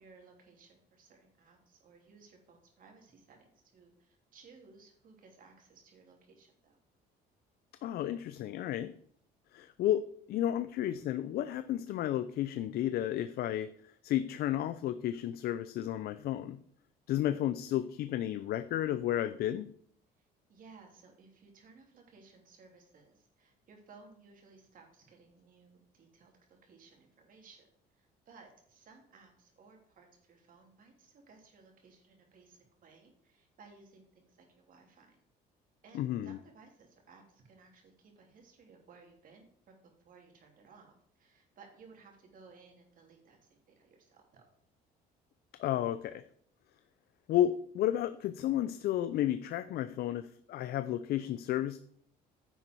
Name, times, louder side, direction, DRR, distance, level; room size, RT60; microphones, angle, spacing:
voice 1, 0.0-6.8 20.2-35.2 35.8-44.4, right 4 dB, 55° right, 2 dB, 3.0 m, -59 dB
voice 2, 7.8-8.9 9.5-10.0 10.3-16.6 17.1-19.7 35.9-36.4 45.6-46.2 47.3-51.8, left 12 dB, 65° left, 13 dB, 0.5 m, -32 dB
10.0 x 7.9 x 4.6 m, 0.65 s
cardioid pair, 110°, 17 cm